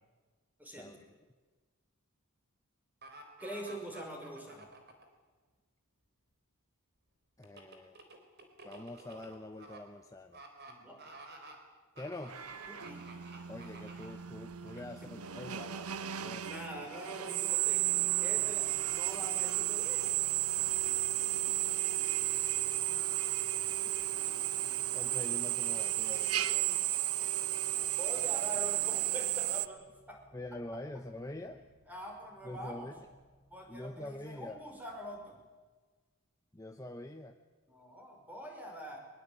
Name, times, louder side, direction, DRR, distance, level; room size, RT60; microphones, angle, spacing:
voice 1, 0.6-1.0 3.4-4.7 10.7-11.0 12.7-13.0 14.8-14.9 16.1-17.8 18.2-20.1 28.0-30.2 31.9-32.9 33.5-35.4 37.7-39.0, equal, 10° right, 1 dB, 5.6 m, -45 dB
sound 1, 3.0-5.1 7.4-9.8 10.3-10.7 11.0-11.6 12.0-14.2 14.7-14.8, right 2 dB, 45° right, 4.0 m, -51 dB
voice 2, 7.4-8.0 8.6-10.4 12.0-12.4 13.5-16.4 24.9-26.8 30.3-31.6 32.4-33.1 33.7-34.6 36.5-37.4, left 1 dB, 15° left, 5 dB, 0.9 m, -45 dB
Drill, 12.3-29.7, right 15 dB, 85° right, 1.0 m, -33 dB
sound 2, 18.2-35.2, equal, 40° left, 3.1 m, -64 dB
22.5 x 22.0 x 9.0 m, 1.3 s
head